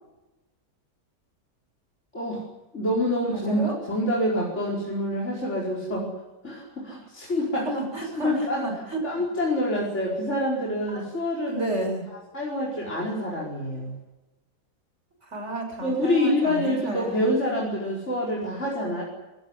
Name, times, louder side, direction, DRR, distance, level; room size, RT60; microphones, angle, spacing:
voice 1, 2.1-2.4 2.7-3.6 3.9-6.1 6.4-7.8 8.1-8.6 9.0-11.8 12.3-13.9 15.8-19.0, left 1 dB, 45° left, -4 dB, 5.4 m, -26 dB
voice 2, 3.3-3.8 7.5-9.0 10.9-11.1 11.4-12.0 15.2-17.3, right 1 dB, 45° right, 3 dB, 6.9 m, -32 dB
25.5 x 16.5 x 9.9 m, 1.1 s
omnidirectional pair, 1.7 m